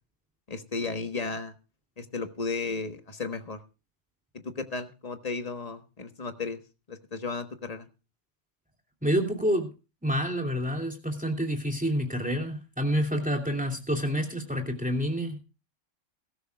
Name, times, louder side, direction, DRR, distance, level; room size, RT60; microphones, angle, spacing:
voice 1, 0.5-1.5 2.0-3.6 4.4-6.6 6.9-7.9, left 4 dB, 30° left, 8 dB, 1.3 m, -34 dB
voice 2, 9.0-9.7 10.0-15.4, equal, 5° right, 2 dB, 2.9 m, -28 dB
21.5 x 13.0 x 2.3 m, 0.32 s
omnidirectional pair, 1.3 m